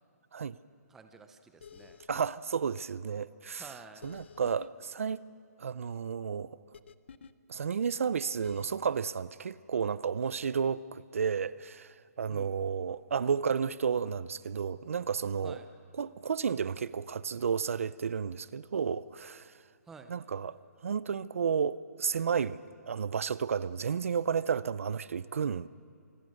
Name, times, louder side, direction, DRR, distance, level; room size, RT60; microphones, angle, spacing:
voice 1, 0.9-2.0 3.6-4.2 12.3-12.5 15.4-15.7 19.9-20.2, right 4 dB, 5° right, 0.5 m, -51 dB
sound 1, 1.6-2.3 4.0-4.7 6.7-7.3 8.4-8.7, left 6 dB, 45° left, 0.7 m, -50 dB
voice 2, 2.1-3.6 4.0-5.2 5.6-6.6 7.5-11.9 12.2-15.6 16.0-19.5 20.1-20.6 20.8-22.6 22.9-25.7, right 6 dB, 55° right, 0.5 m, -32 dB
26.5 x 20.0 x 6.4 m
hypercardioid pair, 170°, 9 cm